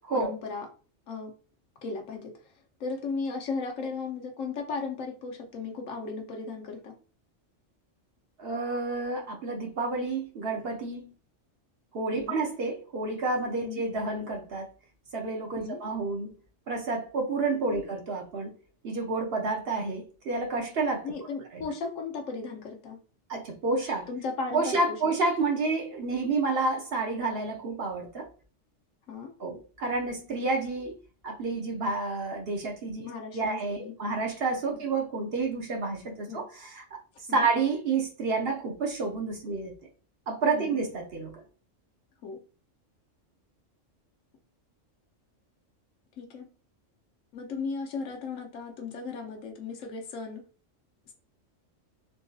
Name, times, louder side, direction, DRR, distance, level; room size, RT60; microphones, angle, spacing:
voice 1, 0.1-0.7 1.1-1.3 1.8-2.5 2.8-6.9 12.1-12.4 13.6-13.8 15.6-15.8 17.6-17.9 21.0-23.0 24.1-25.0 29.1-29.3 33.0-33.9 34.7-34.8 36.3-36.4 37.3-37.5 40.5-40.8 42.2-42.4 46.2-46.5 47.3-50.4 51.1-51.2, left 4 dB, 80° left, 2 dB, 1.1 m, -36 dB
voice 2, 8.4-11.1 11.9-14.7 15.1-16.3 16.7-18.5 18.8-21.1 21.5-21.6 23.3-24.1 24.5-28.3 29.4-30.9 31.2-33.1 33.3-36.8 37.3-39.7 40.3-41.3, right 3 dB, 55° right, 1 dB, 0.9 m, -29 dB
3.7 x 2.6 x 2.3 m, 0.37 s
omnidirectional pair, 1.3 m